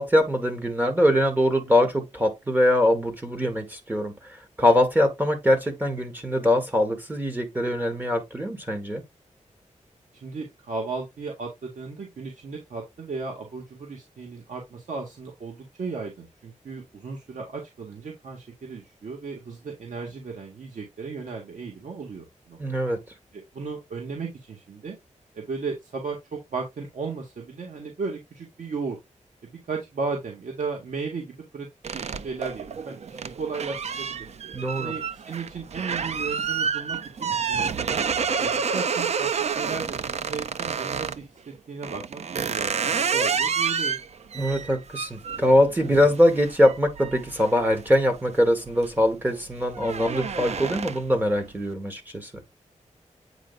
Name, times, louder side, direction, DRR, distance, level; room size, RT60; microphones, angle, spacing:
voice 1, 0.0-4.1 4.6-9.0 22.6-23.0 34.5-34.9 44.3-52.3, left 1 dB, 15° right, 1.8 m, -22 dB
voice 2, 10.1-22.6 23.3-25.0 25.3-29.0 29.4-31.7 31.9-34.3 34.8-38.0 38.4-44.0, right 4 dB, 80° right, 2.0 m, -35 dB
sound 1, 31.8-41.2 41.8-48.3 48.7-49.0 49.4-51.2, right 6 dB, 60° right, 0.6 m, -29 dB
9.1 x 5.0 x 2.5 m
wide cardioid pair, 165°, 13 cm